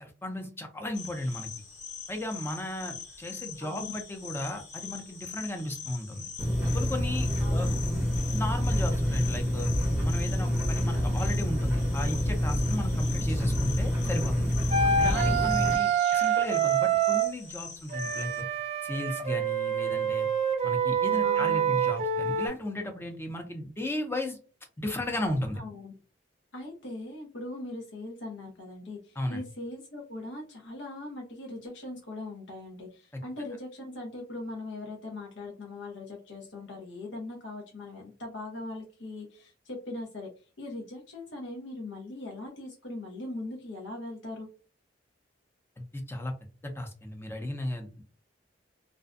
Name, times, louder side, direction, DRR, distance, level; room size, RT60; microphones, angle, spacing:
voice 1, 0.0-1.5 2.1-6.3 6.7-7.7 8.3-9.7 10.0-14.6 15.0-18.4 18.8-20.3 20.6-24.4 24.8-25.6 29.2-29.4 33.1-33.2 45.8-46.3 46.6-48.0, left 1 dB, 15° left, 4 dB, 0.5 m, -35 dB
sound 1, 0.9-18.4, left 6 dB, 40° left, 0.8 m, -43 dB
voice 2, 3.6-3.9 7.4-8.0 14.8-15.5 21.2-21.7 25.5-25.9 26.5-40.3 40.6-44.5, left 2 dB, 90° left, -1 dB, 0.7 m, -40 dB
sound 2, 6.4-15.8, equal, 10° right, 0.8 m, -27 dB
Wind instrument woodwind instrument, 14.7-17.3 17.9-22.5, right 7 dB, 35° right, 0.5 m, -26 dB
2.5 x 2.1 x 2.4 m, 0.36 s
head